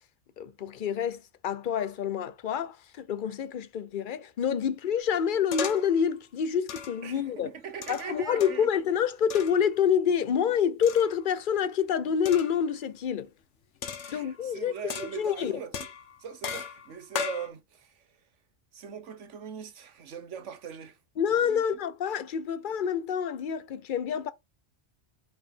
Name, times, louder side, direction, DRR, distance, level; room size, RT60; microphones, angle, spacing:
voice 1, 0.4-7.5 7.9-13.3 14.1-14.8 15.2-15.5 21.2-24.3, left 8 dB, 50° left, 0.7 m, -27 dB
sound 1, 5.5-6.0 6.7-7.1 7.8-8.8 9.3-9.7 10.8-11.3 12.3-12.6 13.8-14.5 14.9-15.4 15.7-17.5, left 6 dB, 75° left, 1.3 m, -37 dB
voice 2, 7.0-8.7 14.0-15.9 16.2-18.0 18.7-21.0 21.4-21.6, right 7 dB, 90° right, 1.3 m, -41 dB
4.8 x 4.4 x 5.1 m
omnidirectional pair, 1.2 m